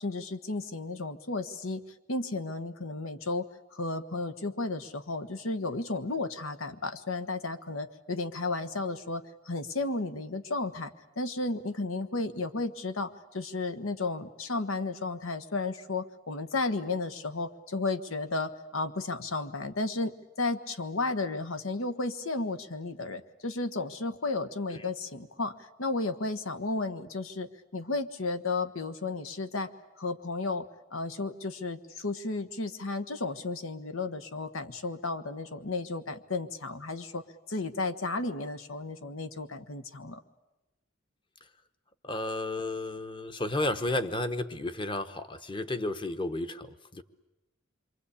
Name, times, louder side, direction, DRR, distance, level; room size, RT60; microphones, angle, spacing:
voice 1, 0.0-1.8 2.1-25.5 25.8-29.7 30.0-37.2 37.5-40.2, left 3 dB, 85° left, 10 dB, 1.3 m, -33 dB
voice 2, 42.0-47.0, left 2 dB, 25° left, 9 dB, 1.0 m, -32 dB
27.5 x 23.5 x 8.5 m, 1.0 s
head